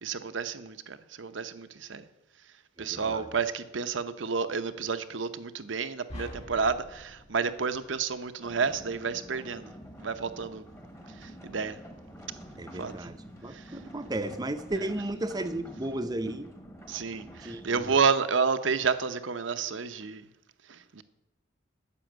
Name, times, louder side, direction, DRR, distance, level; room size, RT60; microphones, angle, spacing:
voice 1, 0.0-2.0 2.8-9.7 10.0-10.6 11.2-11.8 12.8-13.1 13.5-13.6 16.9-20.2 20.7-21.0, right 5 dB, 75° right, 0.8 m, -30 dB
voice 2, 2.8-3.3 12.6-16.5 17.4-17.9, right 1 dB, 20° right, 0.6 m, -34 dB
sound 1, 6.1-8.5, left 1 dB, 35° left, 2.2 m, -45 dB
sound 2, 8.4-18.1, equal, 15° left, 1.2 m, -48 dB
9.9 x 7.1 x 9.0 m
head